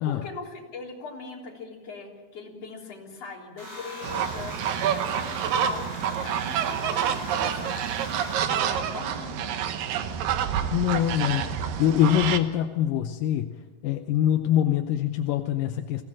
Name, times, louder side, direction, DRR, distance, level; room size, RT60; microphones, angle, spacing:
voice 1, 0.1-9.6, left 4 dB, 40° left, -1 dB, 4.4 m, -40 dB
sound 1, 3.6-9.7, left 1 dB, 15° right, 6.8 m, -42 dB
sound 2, 4.0-12.4, right 9 dB, 70° right, 2.7 m, -28 dB
voice 2, 10.7-13.6 13.8-16.0, left 11 dB, 75° left, 6 dB, 2.2 m, -24 dB
22.5 x 17.0 x 7.5 m, 1.4 s
omnidirectional pair, 4.3 m